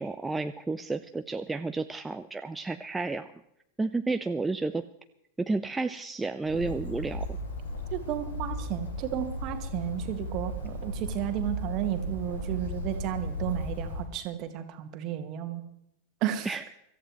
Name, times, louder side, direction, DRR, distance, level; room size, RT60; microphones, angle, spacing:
voice 1, 0.0-3.3 3.8-4.8 5.4-7.4 16.4-16.6, right 3 dB, 10° right, 8 dB, 0.5 m, -31 dB
Bird, 6.4-14.1, equal, 70° left, 3.3 m, -35 dB
voice 2, 7.9-15.6 16.2-16.5, right 11 dB, 40° right, 7 dB, 1.6 m, -33 dB
25.0 x 14.0 x 3.1 m, 0.80 s
figure-of-eight pair, 90°, 0 cm